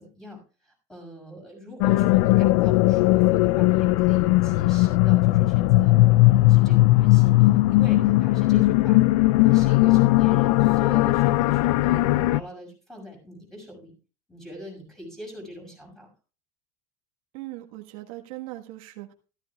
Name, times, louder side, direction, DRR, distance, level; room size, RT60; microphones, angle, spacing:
voice 1, 0.0-6.0 6.3-9.0 9.4-13.9 14.3-16.1, equal, ahead, 1 dB, 6.3 m, -42 dB
sound 1, 1.8-12.4, left 18 dB, 75° left, 0.5 m, -18 dB
voice 2, 17.3-19.1, right 17 dB, 80° right, 2 dB, 1.5 m, -39 dB
16.0 x 14.0 x 2.4 m, 0.35 s
supercardioid pair, 130°, 18 cm